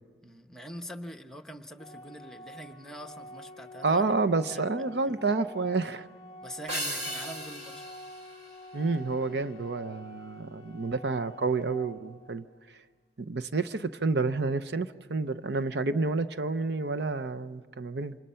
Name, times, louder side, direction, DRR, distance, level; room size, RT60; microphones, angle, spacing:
voice 1, 0.2-4.1 4.5-4.7 6.4-7.8, equal, 5° left, 5 dB, 0.9 m, -44 dB
Organ, 1.8-12.8, left 1 dB, 20° left, 1.5 m, -48 dB
voice 2, 3.8-6.1 8.7-12.5 13.2-18.2, right 3 dB, 70° right, 12 dB, 0.7 m, -29 dB
sound 1, 6.7-9.3, right 1 dB, 40° right, 1.9 m, -37 dB
28.0 x 26.5 x 5.7 m, 1.5 s
head